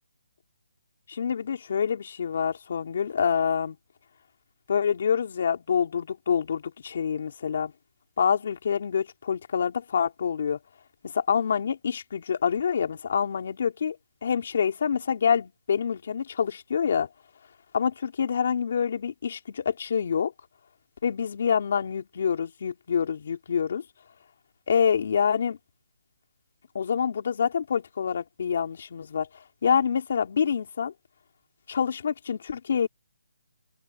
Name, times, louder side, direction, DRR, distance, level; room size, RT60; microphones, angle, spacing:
voice 1, 1.1-3.8 4.7-7.7 8.2-10.6 11.0-14.0 14.2-17.1 17.7-20.3 21.0-23.8 24.7-25.6 26.7-29.3 29.6-30.9 31.7-32.9, left 7 dB, 45° left, 4.0 m, -26 dB
hypercardioid pair, 170°, 0 cm